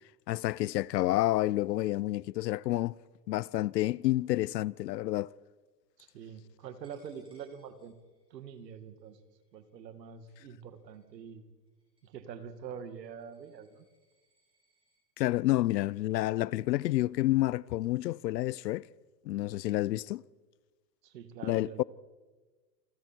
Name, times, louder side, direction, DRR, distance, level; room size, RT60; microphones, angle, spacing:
voice 1, 0.3-2.9 3.3-5.3 15.2-18.9 19.2-20.2 21.4-21.8, left 16 dB, 85° left, 0.7 m, -29 dB
voice 2, 6.0-8.0 8.3-9.2 9.5-11.4 12.0-13.9 21.0-21.8, right 7 dB, 90° right, 2.5 m, -45 dB
Coin (dropping), 6.8-15.0, right 1 dB, 10° right, 8.0 m, -73 dB
28.5 x 22.5 x 4.6 m
supercardioid pair, 150°, 49 cm